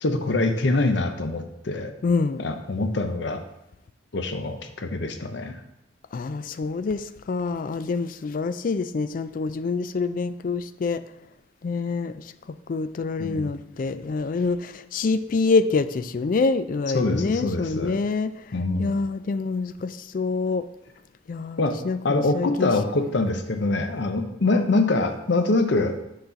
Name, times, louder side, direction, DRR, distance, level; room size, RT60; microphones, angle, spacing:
voice 1, 0.0-1.9 2.4-3.4 4.1-5.6 13.2-13.5 16.9-18.0 18.5-19.0 21.6-21.8 22.0-25.9, left 2 dB, 60° left, 7 dB, 0.7 m, -24 dB
voice 2, 2.0-2.4 6.1-11.0 11.6-12.3 12.7-18.3 18.8-20.6 21.3-22.7 24.5-24.7, left 4 dB, 45° left, 13 dB, 0.3 m, -26 dB
6.5 x 4.0 x 5.7 m, 0.88 s
head